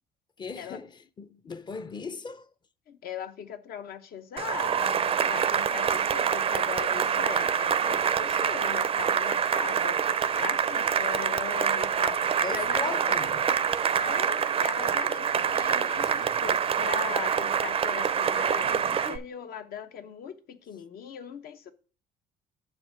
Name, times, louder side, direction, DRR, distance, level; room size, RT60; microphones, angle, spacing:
voice 1, 0.4-2.5 12.4-13.5, left 4 dB, 25° left, 0.6 m, -37 dB
voice 2, 2.9-5.0 5.3-10.1 10.3-13.0 14.0-21.7, left 8 dB, 65° left, 0.9 m, -39 dB
Cheering / Applause, 4.4-19.2, right 7 dB, 35° right, 0.5 m, -26 dB
6.4 x 4.8 x 6.1 m
cardioid pair, 110°, 17 cm